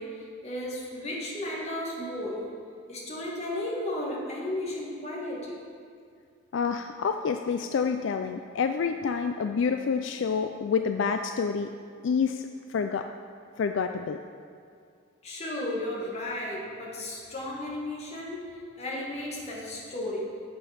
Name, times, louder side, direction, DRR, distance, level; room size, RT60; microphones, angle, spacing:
voice 1, 0.0-2.6 2.9-5.6 13.5-13.6 15.2-20.4, left 1 dB, 30° left, -4 dB, 1.6 m, -34 dB
voice 2, 6.5-11.7 12.0-13.1 13.6-14.2, left 6 dB, 70° left, 6 dB, 0.3 m, -28 dB
7.8 x 6.8 x 5.8 m, 2.3 s
head